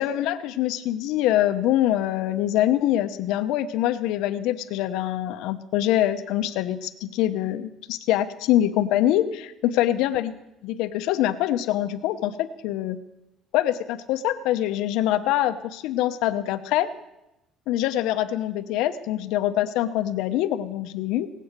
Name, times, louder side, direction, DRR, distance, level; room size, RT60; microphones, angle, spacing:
voice 1, 0.0-10.3 10.6-13.0 13.5-16.9 17.7-21.3, left 13 dB, 90° left, 10 dB, 0.8 m, -24 dB
18.5 x 8.4 x 6.6 m, 0.92 s
cardioid pair, 180°, 0 cm